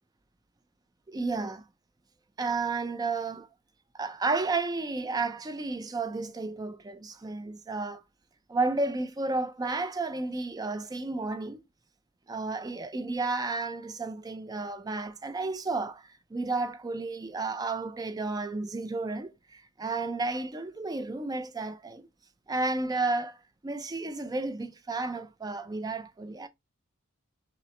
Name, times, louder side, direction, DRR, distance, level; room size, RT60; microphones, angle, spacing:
voice 1, 1.1-1.6 2.4-3.5 3.9-8.0 8.5-11.6 12.3-22.0 22.5-23.4 23.6-26.5, right 3 dB, 15° right, 0.4 m, -32 dB
5.4 x 2.0 x 3.0 m
head